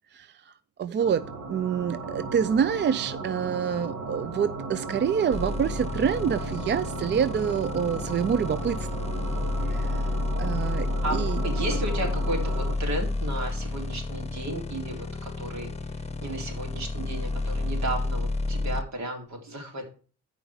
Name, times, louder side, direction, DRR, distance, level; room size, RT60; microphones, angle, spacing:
voice 1, 0.8-8.9 9.7-10.0 10.4-11.4, right 8 dB, 40° right, 15 dB, 0.4 m, -27 dB
sound 1, 1.0-12.8, right 3 dB, 85° right, 2.8 m, -36 dB
sound 2, 5.3-18.8, left 2 dB, 20° left, 1.0 m, -30 dB
voice 2, 11.0-15.7 16.2-19.8, right 1 dB, 65° right, 2 dB, 3.7 m, -34 dB
13.0 x 5.1 x 4.8 m, 0.39 s
cardioid pair, 90°, 30 cm